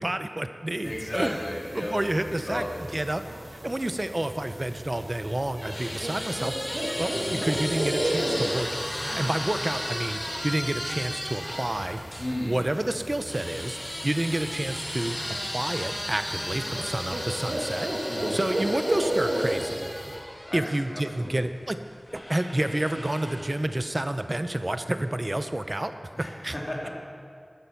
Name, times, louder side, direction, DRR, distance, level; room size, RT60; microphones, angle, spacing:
voice 1, 0.0-1.4 1.8-2.6 2.9-3.2 3.6-6.5 7.0-8.7 9.1-12.0 12.5-15.2 15.4-17.9 18.3-19.9 20.5-21.8 22.1-25.9 26.4-26.5, right 1 dB, 35° right, 9 dB, 0.6 m, -29 dB
voice 2, 0.8-2.0 2.3-2.9 7.1-7.4 12.2-12.6 18.1-18.4 20.5-21.5 26.1-26.9, left 1 dB, 50° left, -3 dB, 2.7 m, -34 dB
sound 1, 0.8-20.2, right 1 dB, 75° right, 2.1 m, -34 dB
sound 2, 5.3-12.3 13.3-21.2 22.1-23.7, equal, 30° left, 3.7 m, -35 dB
13.5 x 9.5 x 5.8 m, 2.3 s
wide cardioid pair, 50°, 0 cm